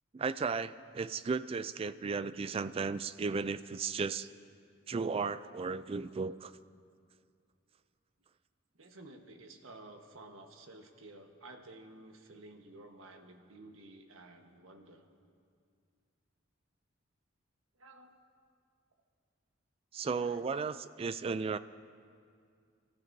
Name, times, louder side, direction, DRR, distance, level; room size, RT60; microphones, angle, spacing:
voice 1, 0.1-4.3 4.9-6.5 19.9-21.6, right 5 dB, 30° right, 14 dB, 0.3 m, -35 dB
voice 2, 8.7-15.1 17.8-18.1 20.1-20.5, right 2 dB, 90° right, 4 dB, 1.3 m, -53 dB
28.5 x 14.5 x 2.7 m, 2.2 s
head